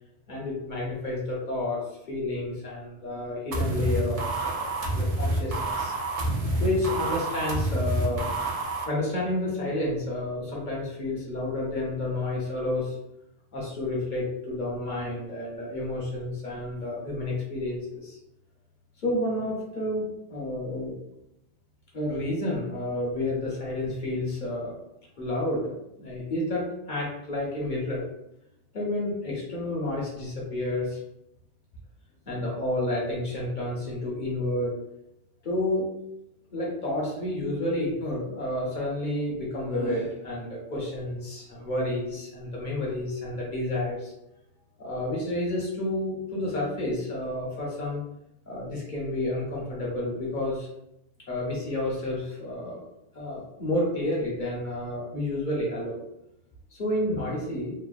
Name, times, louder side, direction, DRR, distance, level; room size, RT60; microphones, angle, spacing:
voice 1, 0.3-5.9 6.6-8.3 8.8-12.9 13.5-18.2 19.0-20.9 21.9-24.7 25.2-25.7 26.0-28.0 28.7-31.0 32.3-34.7 35.4-35.9 36.5-44.1 44.8-48.0 48.5-50.7 51.3-52.8 53.1-56.0 56.7-57.7, left 1 dB, 50° left, -4 dB, 0.8 m, -30 dB
sound 1, 3.5-8.9, right 2 dB, 60° right, 0.4 m, -28 dB
3.0 x 2.1 x 2.4 m, 0.83 s
omnidirectional pair, 1.2 m